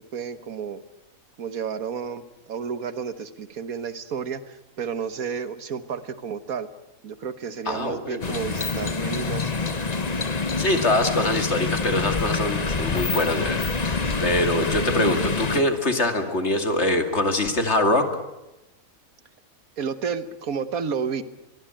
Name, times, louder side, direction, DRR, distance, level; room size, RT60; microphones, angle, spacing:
voice 1, 0.1-0.8 1.4-6.7 7.0-9.5 19.8-21.2, right 6 dB, 90° right, 12 dB, 1.7 m, -31 dB
voice 2, 7.7-8.4 10.6-18.1, left 1 dB, 50° left, 6 dB, 2.8 m, -24 dB
sound 1, 8.2-15.6, left 4 dB, 30° left, 1.2 m, -26 dB
23.5 x 23.0 x 9.0 m, 0.94 s
omnidirectional pair, 1.5 m